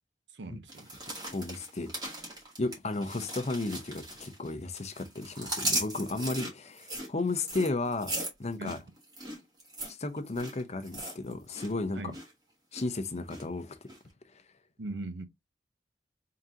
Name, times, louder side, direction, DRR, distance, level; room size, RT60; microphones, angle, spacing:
voice 1, 0.3-0.9 8.6-8.8 11.9-12.1 14.8-15.2, right 2 dB, 75° right, 0.8 m, -39 dB
sound 1, 0.7-4.5 4.8-11.7 12.0-12.3 12.7-13.4 13.9-14.0, right 1 dB, 25° right, 1.9 m, -38 dB
voice 2, 1.3-1.9 2.6-8.1 8.4-8.8 9.9-12.1 12.7-13.9 14.3-14.4, left 2 dB, 40° left, 0.7 m, -34 dB
3.8 x 3.8 x 2.7 m
head